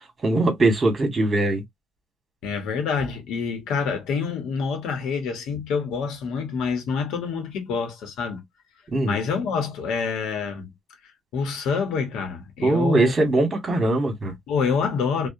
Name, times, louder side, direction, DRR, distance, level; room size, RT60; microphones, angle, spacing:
voice 1, 0.2-1.6 8.9-9.2 12.6-14.3, right 2 dB, 35° right, 1.3 m, -21 dB
voice 2, 2.4-8.4 9.0-10.7 11.3-13.1 14.5-15.3, left 5 dB, 90° left, 0.9 m, -27 dB
2.7 x 2.1 x 2.5 m
cardioid pair, 90°, 0 cm